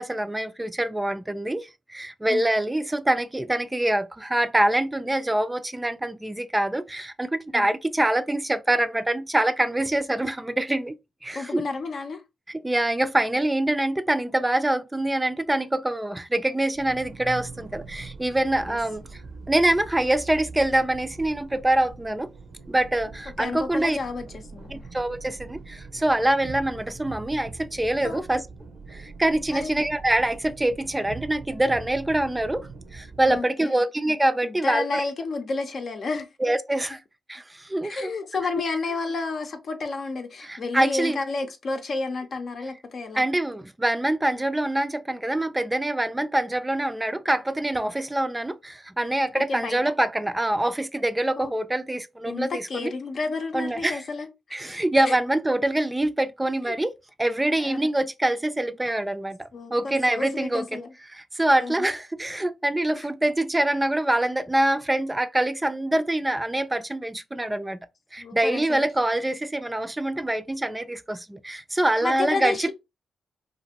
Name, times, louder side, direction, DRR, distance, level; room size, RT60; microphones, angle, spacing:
voice 1, 0.0-11.0 11.2-11.6 12.6-19.2 19.5-22.3 22.7-24.0 24.7-28.4 28.9-35.0 36.4-37.0 37.3-38.4 40.4-41.2 43.2-52.9 53.5-54.0 54.5-56.9 57.2-60.8 61.1-67.8 68.1-72.7, right 1 dB, 15° right, 0.4 m, -25 dB
voice 2, 11.3-12.2 18.7-18.8 23.4-24.8 28.0-28.3 29.5-29.7 33.3-33.8 34.4-36.3 37.8-43.2 49.3-49.8 51.4-51.5 52.3-54.3 55.0-55.2 56.6-56.8 57.6-57.9 59.5-60.9 61.6-61.9 62.8-62.9 68.2-68.8 72.0-72.7, left 3 dB, 60° left, 0.7 m, -31 dB
sound 1, 16.7-33.4, right 4 dB, 70° right, 0.6 m, -42 dB
2.8 x 2.5 x 2.8 m
supercardioid pair, 45°, 0 cm